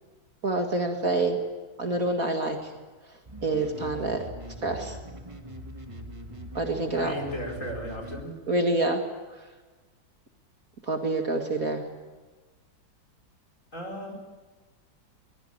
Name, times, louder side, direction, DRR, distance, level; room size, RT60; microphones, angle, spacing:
voice 1, 0.4-1.4 1.8-2.7 3.4-4.2 4.6-5.0 6.5-7.1 8.5-9.0 10.8-11.8, right 2 dB, 45° right, 3 dB, 2.3 m, -27 dB
sound 1, 3.3-8.2, equal, 15° right, 1.4 m, -42 dB
voice 2, 6.9-8.4 13.7-14.1, equal, 40° left, 1 dB, 4.8 m, -35 dB
22.5 x 21.0 x 8.7 m, 1.3 s
omnidirectional pair, 2.2 m